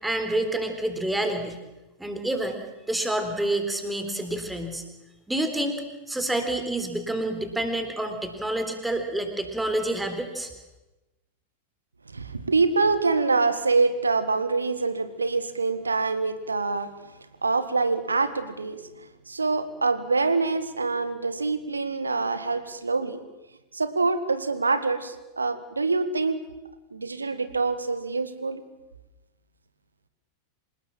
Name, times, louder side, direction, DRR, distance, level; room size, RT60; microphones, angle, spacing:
voice 1, 0.0-1.6 2.0-2.6 2.9-4.8 5.3-5.8 6.1-10.5, right 1 dB, 5° right, 6 dB, 3.9 m, -28 dB
voice 2, 12.1-16.9 17.4-18.8 19.3-23.2 23.7-26.4 26.9-28.6, right 3 dB, 80° right, 11 dB, 1.9 m, -25 dB
26.5 x 19.5 x 7.6 m, 1.0 s
figure-of-eight pair, 90°, 0 cm